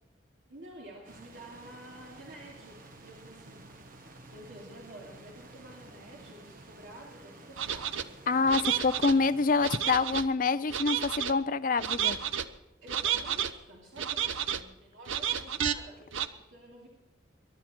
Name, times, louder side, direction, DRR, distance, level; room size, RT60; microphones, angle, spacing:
voice 1, 0.5-3.7 4.2-8.2 12.8-16.9, right 1 dB, 65° right, -4 dB, 2.7 m, -50 dB
sound 1, 1.0-9.8, right 2 dB, 45° right, 1.3 m, -52 dB
sound 2, 7.6-8.0 8.5-9.1 9.6-10.3 10.7-11.3 11.8-12.4 12.9-13.5 14.0-14.6 15.1-15.7 16.1-16.3, right 9 dB, 85° right, 0.8 m, -31 dB
voice 2, 8.3-12.2, left 4 dB, 45° left, 13 dB, 0.5 m, -26 dB
22.5 x 11.0 x 4.4 m, 0.99 s
head